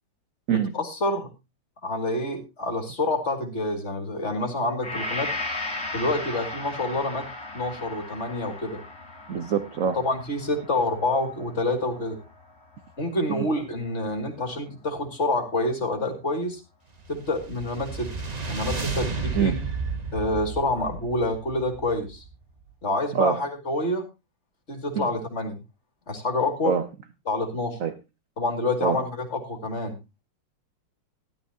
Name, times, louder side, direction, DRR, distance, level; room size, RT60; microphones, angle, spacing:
voice 1, 0.5-1.3 1.8-5.3 5.9-7.3 7.5-8.8 10.0-12.2 13.0-16.6 17.1-18.1 18.4-19.6 20.1-22.2 22.8-24.1 24.7-25.6 26.1-26.8 27.3-27.8 28.4-30.0, left 2 dB, 30° left, 2.4 m, -27 dB
Gong, 4.8-12.9, left 2 dB, 10° left, 3.1 m, -36 dB
voice 2, 9.3-10.0 13.3-13.5 19.3-19.5 23.1-23.4 24.9-25.1 26.6-26.8 27.8-27.9 28.8-29.0, right 7 dB, 65° right, 0.8 m, -24 dB
sound 1, 17.0-22.4, right 4 dB, 30° right, 0.7 m, -32 dB
14.0 x 11.5 x 2.8 m
omnidirectional pair, 2.4 m